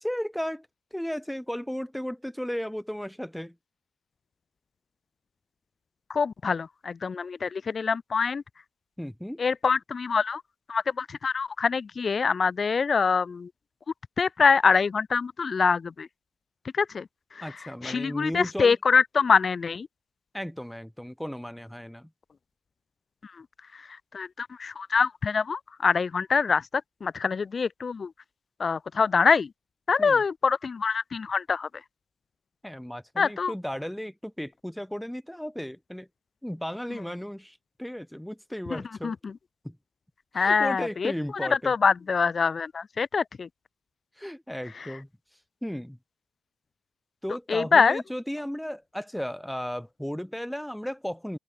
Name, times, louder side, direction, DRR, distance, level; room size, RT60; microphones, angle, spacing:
voice 1, 0.0-0.7 0.9-3.5 9.0-9.4 17.4-18.7 20.3-22.1 30.0-30.2 32.6-36.1 36.4-39.1 39.6-39.8 40.3-41.7 44.2-45.1 45.6-46.0 47.2-51.4, equal, ahead, 1.6 m, -35 dB
voice 2, 6.1-8.4 9.4-10.4 10.7-13.5 14.2-16.1 16.7-17.1 17.3-19.9 23.7-23.8 24.1-26.7 27.0-28.1 28.6-29.5 29.9-31.7 33.2-33.5 38.7-39.3 40.3-43.5 44.8-44.9 47.5-48.0, left 5 dB, 40° left, 1.5 m, -25 dB
cardioid pair, 90°, 0 cm